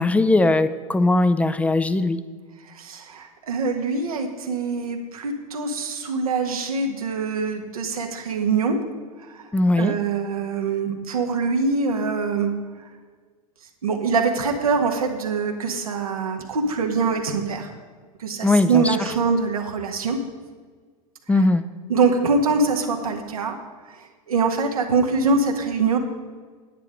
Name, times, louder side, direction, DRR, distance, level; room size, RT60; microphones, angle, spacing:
voice 1, 0.0-2.2 9.5-10.0 18.4-19.1 21.3-21.7, left 2 dB, 5° left, 13 dB, 0.5 m, -19 dB
voice 2, 2.7-8.8 9.2-9.5 9.8-12.5 13.8-17.7 18.2-20.2 21.9-23.5 23.9-24.0 24.3-26.0, right 4 dB, 80° right, 3 dB, 1.6 m, -24 dB
9.9 x 9.5 x 5.1 m, 1.5 s
hypercardioid pair, 90°, 18 cm